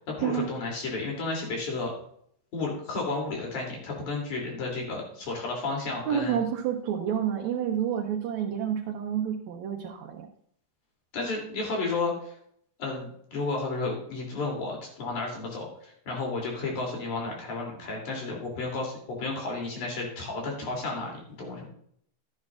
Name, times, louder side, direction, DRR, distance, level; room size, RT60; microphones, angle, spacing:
voice 1, 0.1-1.9 2.5-6.4 11.1-12.3 12.8-21.7, left 3 dB, 85° left, -1 dB, 4.5 m, -32 dB
voice 2, 6.1-10.3, right 9 dB, 75° right, -1 dB, 2.3 m, -29 dB
12.5 x 9.8 x 2.5 m, 0.65 s
omnidirectional pair, 3.4 m